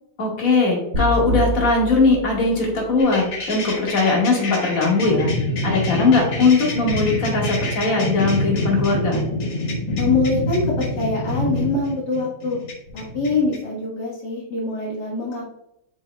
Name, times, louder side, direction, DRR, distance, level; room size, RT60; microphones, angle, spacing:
voice 1, 0.2-5.3 5.6-9.2, left 3 dB, 45° left, -2 dB, 2.2 m, -19 dB
sound 1, 0.9-3.2, equal, 80° right, 2.6 m, -27 dB
sound 2, 3.0-13.6, left 1 dB, 85° left, 2.4 m, -26 dB
voice 2, 10.0-12.6 12.9-15.5, left 3 dB, 65° left, -6 dB, 2.1 m, -24 dB
8.5 x 5.2 x 2.3 m, 0.84 s
omnidirectional pair, 2.0 m